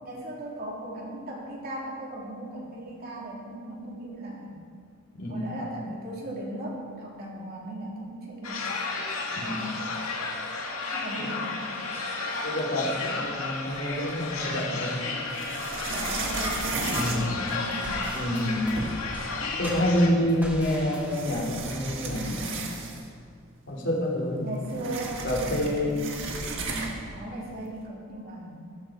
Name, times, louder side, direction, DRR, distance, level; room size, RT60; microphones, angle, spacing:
voice 1, 0.0-4.5 5.3-8.7 10.9-11.7 15.9-17.8 24.4-26.1 27.1-28.5, right 1 dB, 45° right, -3 dB, 3.2 m, -37 dB
voice 2, 5.1-5.6 9.3-9.8 11.2-11.5 12.4-15.0 16.9-17.2 17.9-18.8 19.6-22.7 23.7-24.4 25.2-26.0 26.6-26.9, left 1 dB, 60° left, -3 dB, 3.1 m, -28 dB
sound 1, 8.4-20.1, left 3 dB, 90° left, 2.1 m, -33 dB
sound 2, 13.7-14.5 15.3-18.0 18.5-18.6 18.8-19.2 20.3-20.4 21.0-23.2 23.5-23.6 23.9-27.1, right 3 dB, 65° right, 1.8 m, -35 dB
sound 3, 15.9-21.2, equal, 10° right, 3.1 m, -40 dB
14.0 x 14.0 x 5.0 m, 2.1 s
head